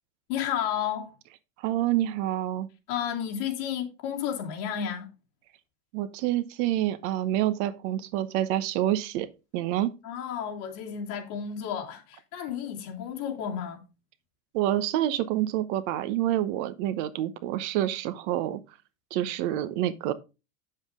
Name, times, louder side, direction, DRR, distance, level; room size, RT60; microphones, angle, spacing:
voice 1, 0.3-1.1 2.9-5.1 10.0-13.8, left 9 dB, 55° left, 2.8 m, -32 dB
voice 2, 1.6-2.7 5.9-9.3 9.5-9.9 14.5-18.6 19.1-20.1, right 13 dB, 55° right, 1.0 m, -27 dB
8.7 x 7.5 x 3.6 m
supercardioid pair, 160°, 43 cm